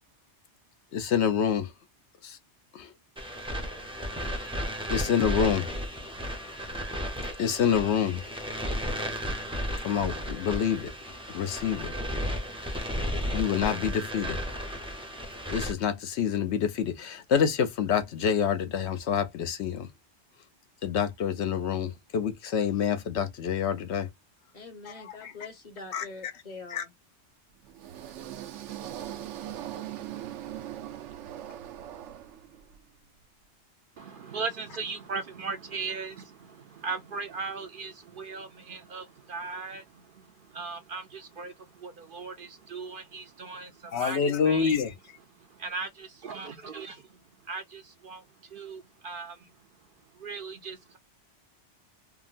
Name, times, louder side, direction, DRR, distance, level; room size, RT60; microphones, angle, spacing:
voice 1, 0.9-1.7 2.2-2.4 2.7-2.9 4.9-5.7 7.4-8.3 9.8-10.9 11.3-11.9 13.3-14.4 15.5-19.9 20.8-24.1 24.8-25.3 25.9-26.0 26.7-26.8 43.9-44.9, left 7 dB, 70° left, 0.9 m, -27 dB
sound 1, 3.2-15.7, equal, 5° right, 0.5 m, -34 dB
voice 2, 24.5-26.9, left 3 dB, 40° left, 0.9 m, -44 dB
sound 2, 27.6-32.8, right 12 dB, 85° right, 0.9 m, -40 dB
voice 3, 34.0-39.8 40.5-41.5 41.8-44.7 45.6-47.0 47.5-48.2 48.5-49.4 50.2-51.0, right 4 dB, 60° right, 0.6 m, -38 dB
3.5 x 2.1 x 2.4 m
omnidirectional pair, 1.2 m